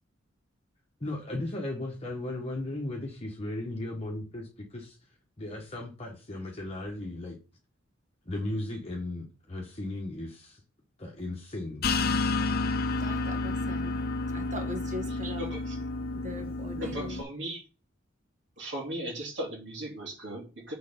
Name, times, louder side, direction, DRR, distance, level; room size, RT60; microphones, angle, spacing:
voice 1, 1.0-5.0 5.4-7.4 8.2-10.6 11.0-11.9, left 1 dB, 30° left, 1.2 m, -36 dB
sound 1, 11.8-17.2, left 3 dB, 50° left, 0.7 m, -30 dB
voice 2, 13.0-14.0 14.3-15.5 16.1-17.2, left 1 dB, 40° right, 1.7 m, -40 dB
voice 3, 15.1-15.8 16.7-17.6 18.6-20.8, right 1 dB, 60° right, 2.7 m, -37 dB
6.6 x 4.3 x 5.1 m
head